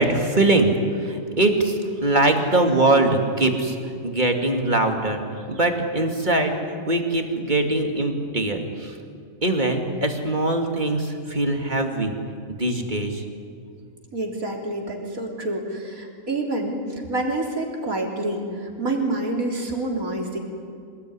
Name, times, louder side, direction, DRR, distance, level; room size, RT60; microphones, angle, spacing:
voice 1, 0.0-3.8 4.0-5.2 5.5-6.6 6.8-8.9 9.4-12.1 12.6-13.2, right 2 dB, 35° right, 3 dB, 2.7 m, -22 dB
voice 2, 14.1-16.8 17.1-20.4, right 2 dB, 80° right, 1 dB, 4.1 m, -27 dB
26.0 x 19.5 x 9.8 m, 2.3 s
omnidirectional pair, 1.5 m